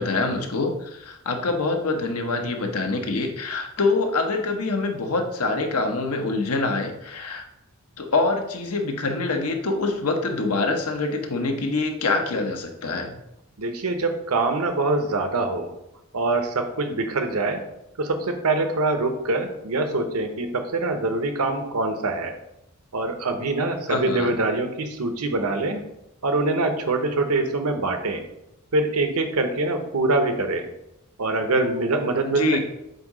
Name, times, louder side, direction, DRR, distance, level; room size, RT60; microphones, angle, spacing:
voice 1, 0.0-7.4 8.0-13.2 23.9-24.4 32.2-32.6, left 3 dB, 85° left, 4 dB, 1.0 m, -25 dB
voice 2, 13.6-15.7 16.1-17.6 18.0-22.3 22.9-25.8 26.2-28.2 28.7-30.7 31.2-32.6, right 2 dB, 85° right, 6 dB, 0.9 m, -24 dB
7.8 x 2.7 x 4.9 m, 0.84 s
head